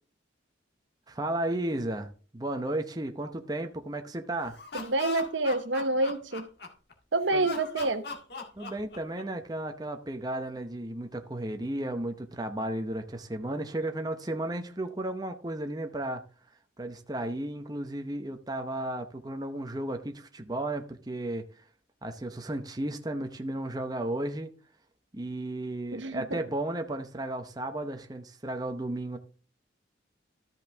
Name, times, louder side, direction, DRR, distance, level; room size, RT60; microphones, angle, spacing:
voice 1, 1.1-4.6 7.3-7.5 8.6-16.2 16.8-21.5 22.0-24.5 25.1-29.2, right 1 dB, 20° right, 0.7 m, -34 dB
Laughter, 4.4-6.9 7.4-9.4, left 4 dB, 55° left, 1.8 m, -40 dB
voice 2, 4.7-6.5 7.1-8.0 25.9-26.4, right 2 dB, 75° right, 1.0 m, -28 dB
13.5 x 5.4 x 3.5 m
head